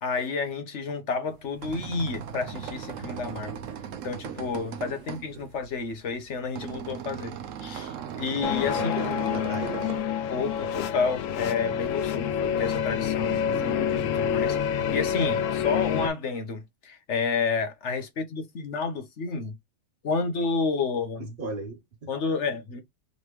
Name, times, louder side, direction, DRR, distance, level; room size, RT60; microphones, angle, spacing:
voice 1, 0.0-3.6 4.0-7.3 7.6-8.9 10.3-19.5 20.0-21.3 22.1-22.8, left 4 dB, 65° left, 1.2 m, -30 dB
sound 1, 1.3-10.0, right 8 dB, 80° right, 1.0 m, -38 dB
sound 2, 8.4-16.1, left 8 dB, 90° left, 1.0 m, -27 dB
voice 2, 8.6-9.9 21.4-22.1, right 3 dB, 50° right, 0.8 m, -37 dB
4.0 x 3.1 x 3.0 m
omnidirectional pair, 1.3 m